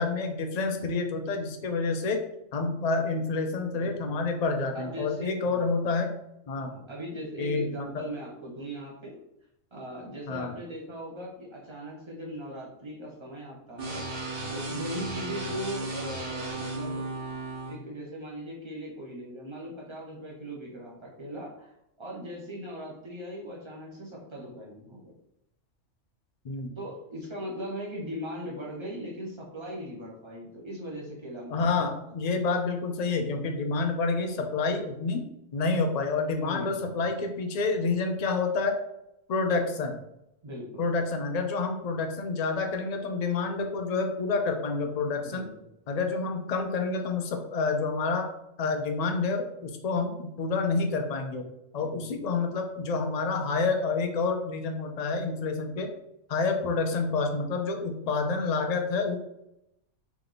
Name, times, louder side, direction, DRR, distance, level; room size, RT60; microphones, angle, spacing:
voice 1, 0.0-2.2 2.5-6.1 6.5-6.7 7.4-8.0 10.3-10.5 26.4-26.7 31.5-35.2 35.5-38.7 39.3-40.0 40.8-45.4 45.9-48.3 48.6-51.4 51.7-55.9 56.3-59.2, left 4 dB, 60° left, 4 dB, 0.4 m, -28 dB
voice 2, 3.7-4.1 4.7-5.7 6.6-9.2 9.7-17.1 17.6-21.7 22.0-25.1 26.8-31.9 36.3-37.1 40.4-40.8 45.2-45.6 51.8-52.0, equal, 25° right, -3 dB, 0.9 m, -39 dB
sound 1, 13.8-17.7, right 2 dB, 50° right, 1.2 m, -35 dB
3.4 x 2.9 x 3.8 m, 0.83 s
omnidirectional pair, 1.3 m